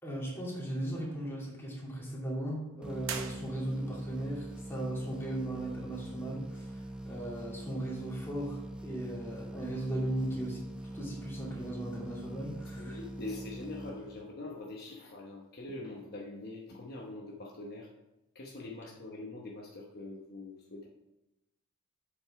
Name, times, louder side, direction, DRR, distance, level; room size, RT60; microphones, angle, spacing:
voice 1, 0.0-10.6 10.9-13.0, right 1 dB, 10° left, -5 dB, 2.4 m, -37 dB
sound 1, 2.8-14.5, right 1 dB, 5° right, 0.9 m, -43 dB
sound 2, 3.0-4.1, right 7 dB, 60° right, 0.8 m, -41 dB
voice 2, 12.8-17.9 18.3-20.9, left 2 dB, 45° left, -1 dB, 1.0 m, -43 dB
7.7 x 5.4 x 4.7 m, 0.96 s
head